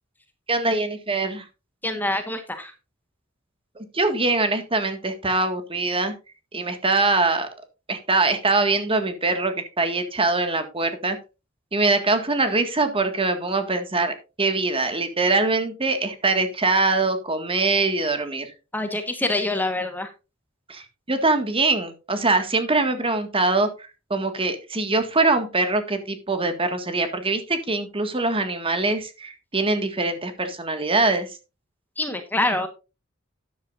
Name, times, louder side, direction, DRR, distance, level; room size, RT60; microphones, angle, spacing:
voice 1, 0.5-1.5 3.8-6.1 6.5-7.5 7.9-11.2 11.7-18.5 20.7-31.4, right 3 dB, 25° right, 8 dB, 1.8 m, -23 dB
voice 2, 1.8-2.7 18.7-20.1 32.0-32.7, left 2 dB, 10° left, 7 dB, 1.3 m, -25 dB
13.0 x 10.5 x 2.6 m, 0.29 s
head